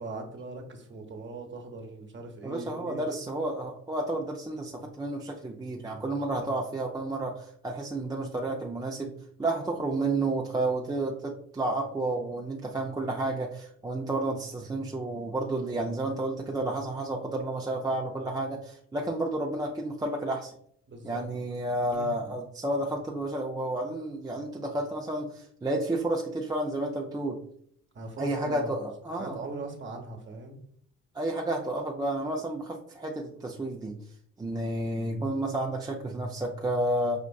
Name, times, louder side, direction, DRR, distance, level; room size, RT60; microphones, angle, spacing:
voice 1, 0.0-3.2 20.9-21.2 21.9-22.1 27.9-28.7 29.1-30.6, right 3 dB, 35° right, 3 dB, 1.0 m, -40 dB
voice 2, 2.4-9.1 9.4-20.5 21.0-27.4 28.2-29.4 31.1-34.0 34.4-37.2, right 2 dB, 10° right, -1 dB, 0.4 m, -31 dB
5.2 x 2.4 x 2.3 m, 0.65 s
supercardioid pair, 70°, 33 cm